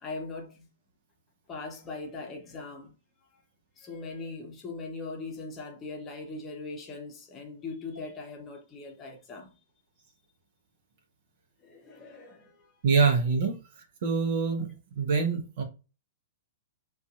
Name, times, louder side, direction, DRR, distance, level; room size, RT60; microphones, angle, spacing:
voice 1, 0.0-0.7 1.5-2.9 3.3-3.4 3.8-9.5 11.6-12.7, left 3 dB, 25° left, 0.7 m, -40 dB
voice 2, 12.8-14.7 14.9-15.6, right 5 dB, 50° right, 0.8 m, -25 dB
2.5 x 2.3 x 2.4 m
figure-of-eight pair, 105°, 0 cm